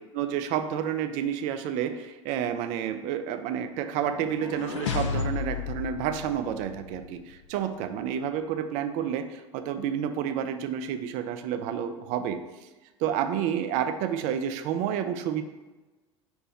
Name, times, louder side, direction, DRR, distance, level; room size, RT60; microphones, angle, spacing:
voice 1, 0.1-12.4 13.0-15.4, right 9 dB, 50° right, 8 dB, 0.4 m, -30 dB
sound 1, 4.0-7.1, left 6 dB, 75° left, 0.4 m, -33 dB
5.8 x 2.2 x 4.1 m, 1.2 s
hypercardioid pair, 80°, 15 cm